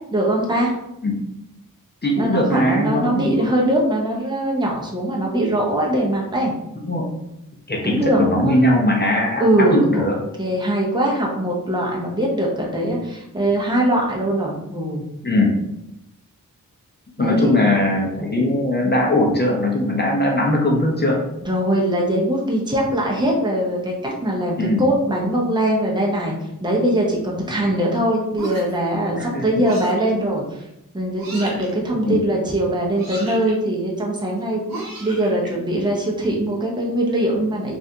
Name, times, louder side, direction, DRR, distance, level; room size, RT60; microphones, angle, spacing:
voice 1, 0.1-0.7 2.2-6.5 7.8-8.6 9.4-10.1 10.4-15.0 17.2-17.5 21.4-26.4 26.6-30.4 30.9-37.8, right 1 dB, 15° right, -2 dB, 0.7 m, -21 dB
voice 2, 2.0-3.3 6.8-7.1 7.7-10.2 15.2-15.6 17.2-21.2 24.6-24.9 27.6-27.7 29.1-29.4 31.9-32.2, left 1 dB, 30° left, -1 dB, 0.7 m, -20 dB
sound 1, 28.3-28.9 29.6-30.1 31.2-31.7 33.0-33.5 34.7-35.5, right 2 dB, 70° right, 1.0 m, -33 dB
3.1 x 2.5 x 2.7 m, 0.85 s
cardioid pair, 60°, 35 cm